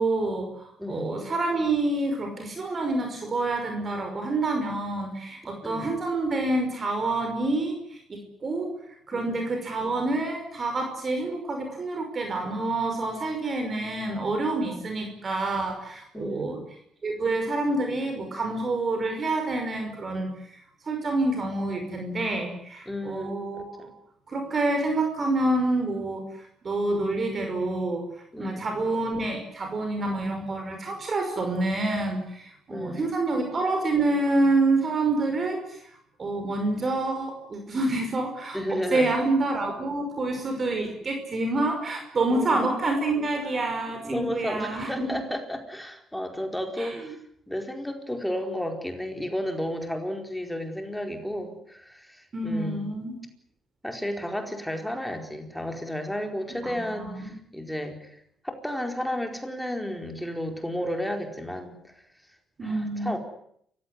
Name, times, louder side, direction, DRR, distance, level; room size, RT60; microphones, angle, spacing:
voice 1, 0.0-8.7 9.1-16.6 17.0-23.9 24.3-45.2 46.8-47.1 52.3-53.2 56.6-57.3 62.6-63.2, right 2 dB, 40° right, 4 dB, 5.6 m, -28 dB
voice 2, 0.8-1.2 5.6-5.9 9.1-9.3 16.1-16.6 22.9-23.9 28.3-28.6 32.7-33.1 38.5-39.1 42.3-42.7 43.3-43.7 44.0-47.2 47.5-52.9 53.8-62.0 62.6-63.2, equal, 5° left, 4 dB, 4.6 m, -33 dB
28.5 x 16.0 x 9.8 m, 0.70 s
cardioid pair, 90°, 0 cm